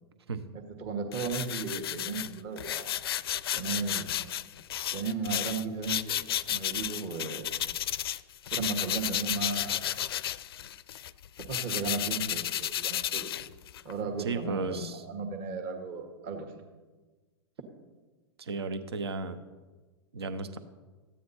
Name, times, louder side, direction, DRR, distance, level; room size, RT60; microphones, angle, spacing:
voice 1, 0.5-2.9 3.5-4.1 4.9-6.2 6.5-7.5 8.5-9.8 11.4-13.3 13.8-16.6, right 4 dB, 40° right, 5 dB, 1.6 m, -35 dB
sound 1, 1.1-8.2 8.5-13.9, left 11 dB, 65° left, 0.4 m, -33 dB
voice 2, 14.2-15.0 18.4-19.4 20.1-20.6, right 4 dB, 75° right, 11 dB, 0.8 m, -34 dB
14.0 x 9.3 x 4.3 m, 1.3 s
figure-of-eight pair, 95°, 14 cm